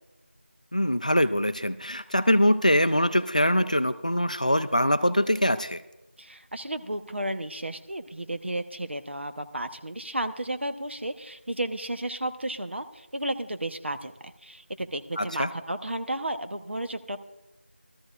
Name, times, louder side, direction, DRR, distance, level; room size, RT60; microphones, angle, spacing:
voice 1, 0.7-5.8 15.2-15.5, equal, 40° left, 12 dB, 0.3 m, -23 dB
voice 2, 6.2-17.2, right 1 dB, 70° right, 8 dB, 0.8 m, -33 dB
16.0 x 13.5 x 2.4 m, 0.95 s
figure-of-eight pair, 180°, 6 cm